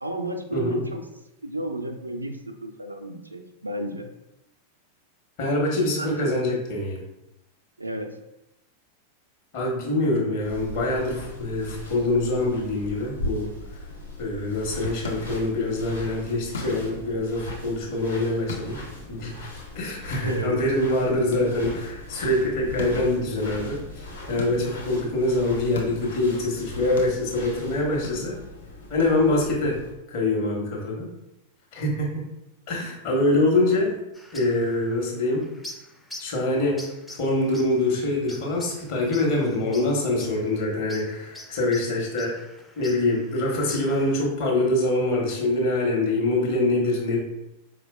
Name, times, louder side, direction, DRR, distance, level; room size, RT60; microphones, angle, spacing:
voice 1, 0.0-1.0 1.4-4.1 6.0-6.4 7.8-8.2 20.2-20.6, right 1 dB, 85° right, 4 dB, 0.3 m, -32 dB
voice 2, 5.4-7.0 9.5-13.5 14.2-18.8 19.1-19.4 19.7-28.4 28.9-29.8 30.1-31.1 31.7-32.2 32.7-33.9 34.3-35.5 36.2-42.3 42.8-47.2, left 2 dB, 45° left, -1 dB, 0.9 m, -24 dB
sound 1, 10.4-29.9, left 1 dB, 80° left, 1.1 m, -39 dB
sound 2, 14.9-29.7, left 3 dB, 65° left, 0.5 m, -43 dB
sound 3, 34.1-44.3, left 1 dB, 5° left, 0.4 m, -46 dB
4.4 x 2.1 x 2.2 m, 0.88 s
figure-of-eight pair, 90°, 0 cm